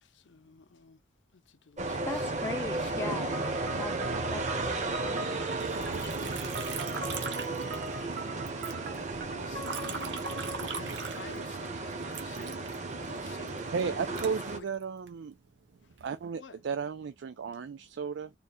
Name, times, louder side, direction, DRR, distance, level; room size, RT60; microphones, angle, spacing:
voice 1, 0.0-1.0 1.3-2.3 2.8-2.9 3.2-3.8 9.3-10.2 10.6-14.2 14.5-14.6 16.4-16.6, left 4 dB, 85° left, 0.6 m, -50 dB
sound 1, 1.8-14.6, right 3 dB, 40° right, 0.9 m, -34 dB
voice 2, 2.0-5.3 6.0-6.3, left 2 dB, 15° left, 0.4 m, -40 dB
sound 2, 3.3-10.7, right 1 dB, 60° right, 1.1 m, -42 dB
Liquid, 5.6-8.2 8.5-11.7 12.1-15.1 15.7-16.2, right 5 dB, 90° right, 1.0 m, -41 dB
voice 3, 13.7-15.3 16.0-18.3, right 6 dB, 75° right, 0.4 m, -34 dB
3.8 x 2.3 x 4.2 m
head